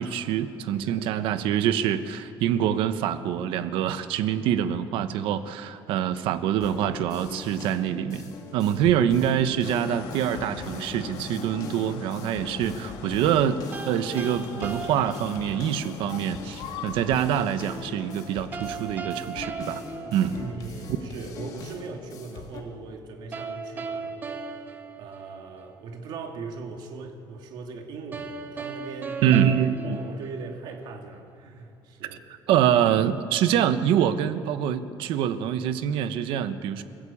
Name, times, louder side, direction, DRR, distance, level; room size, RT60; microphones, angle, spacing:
voice 1, 0.0-13.6 13.8-19.8 20.1-20.4 29.2-30.0 32.5-36.8, right 9 dB, 75° right, 11 dB, 1.2 m, -25 dB
sound 1, 6.6-22.6, left 4 dB, 45° left, 3.0 m, -42 dB
sound 2, 9.6-18.5, left 6 dB, 80° left, 2.7 m, -41 dB
sound 3, 13.7-15.9 18.5-20.9 23.3-25.8 28.1-30.9, right 4 dB, 20° right, 1.2 m, -37 dB
voice 2, 20.3-24.5 24.9-29.4 29.8-32.2, right 4 dB, 55° right, 3 dB, 2.8 m, -39 dB
29.5 x 14.5 x 8.7 m, 2.5 s
cardioid pair, 175°, 9 cm